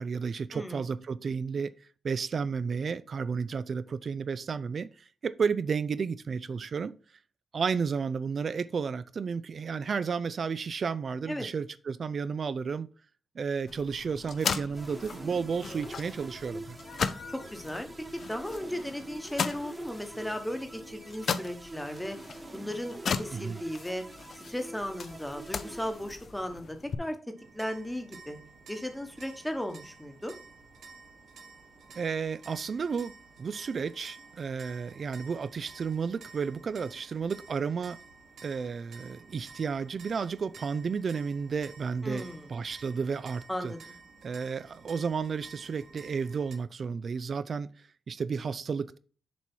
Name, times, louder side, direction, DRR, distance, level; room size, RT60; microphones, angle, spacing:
voice 1, 0.0-1.8 2.0-7.0 7.5-12.9 13.4-16.8 23.3-23.6 32.0-38.0 38.4-43.7 44.2-47.7 48.1-49.0, right 5 dB, 45° right, 0.4 m, -32 dB
voice 2, 0.5-0.8 11.3-11.5 17.3-22.2 22.5-24.0 24.3-27.2 27.5-28.4 28.7-30.4 42.0-42.5 43.5-43.8, left 1 dB, 5° left, 1.0 m, -36 dB
sound 1, 13.7-27.0, left 6 dB, 55° left, 0.5 m, -38 dB
sound 2, 14.7-26.6, right 2 dB, 20° right, 0.8 m, -46 dB
sound 3, 27.4-46.6, right 4 dB, 85° right, 1.2 m, -52 dB
7.0 x 4.6 x 4.4 m
wide cardioid pair, 160°, 0 cm